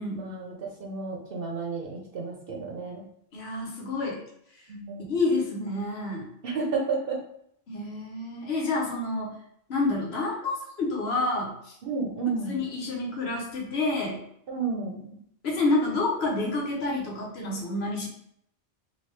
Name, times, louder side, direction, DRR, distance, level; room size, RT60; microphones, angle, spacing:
voice 1, 0.1-3.0 4.7-5.0 6.4-7.2 11.8-12.6 14.5-15.2, right 4 dB, 65° right, -1 dB, 0.8 m, -31 dB
voice 2, 3.3-4.2 5.1-6.3 7.7-9.4 9.7-11.7 12.5-14.2 15.4-18.1, left 2 dB, 80° left, -1 dB, 1.1 m, -28 dB
2.9 x 2.7 x 3.2 m, 0.72 s
omnidirectional pair, 1.1 m